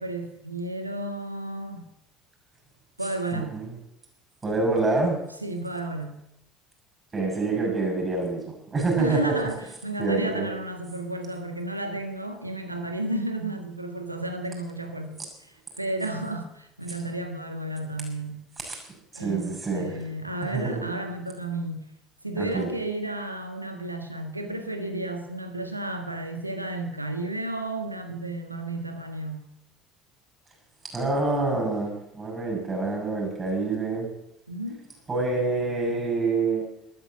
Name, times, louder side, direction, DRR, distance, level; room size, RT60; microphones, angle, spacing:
voice 1, 0.0-1.9 3.0-3.6 5.4-6.2 9.0-18.5 19.1-21.8 22.2-29.5 34.5-34.9, right 1 dB, 85° right, 7 dB, 1.6 m, -32 dB
voice 2, 3.3-3.7 4.4-5.2 7.1-9.5 10.0-10.5 18.6-18.8 19.1-19.9 20.5-20.9 22.4-22.7 30.9-34.1 35.1-36.7, right 3 dB, 25° right, 1 dB, 6.9 m, -26 dB
13.0 x 13.0 x 7.4 m, 0.79 s
figure-of-eight pair, 65°, 0 cm